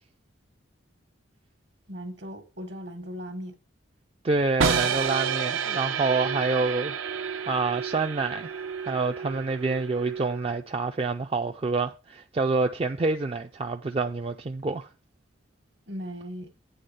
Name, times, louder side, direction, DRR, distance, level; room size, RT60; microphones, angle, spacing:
voice 1, 1.9-3.6 15.9-16.5, equal, 60° right, 1.3 m, -38 dB
voice 2, 4.2-7.2 7.5-14.9, right 3 dB, 30° right, 0.3 m, -27 dB
sound 1, 4.6-10.6, right 6 dB, 80° right, 0.7 m, -30 dB
9.3 x 3.5 x 6.8 m
head